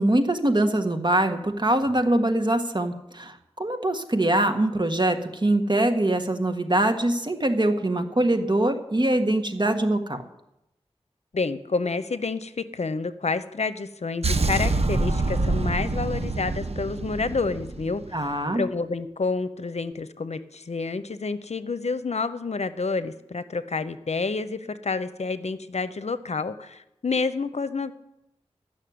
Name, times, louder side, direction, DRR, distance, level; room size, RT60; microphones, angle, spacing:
voice 1, 0.0-10.2 18.1-18.6, right 1 dB, 40° right, 6 dB, 1.5 m, -23 dB
voice 2, 11.3-27.9, left 4 dB, 70° left, 13 dB, 0.7 m, -29 dB
sound 1, 14.2-18.3, right 2 dB, 65° right, 1.1 m, -26 dB
13.5 x 6.4 x 9.4 m, 0.86 s
cardioid pair, 40°, 11 cm